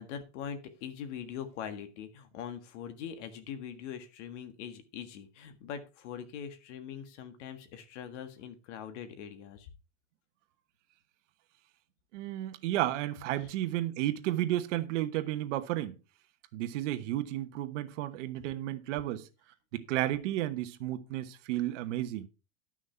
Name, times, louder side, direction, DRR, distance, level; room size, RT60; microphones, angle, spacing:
voice 1, 0.0-9.7 13.4-13.5, left 8 dB, 60° left, 1.8 m, -42 dB
voice 2, 12.1-16.0 16.5-19.3 19.7-22.3, right 14 dB, 65° right, 1.2 m, -32 dB
11.0 x 6.3 x 4.5 m
supercardioid pair, 165°, 40 cm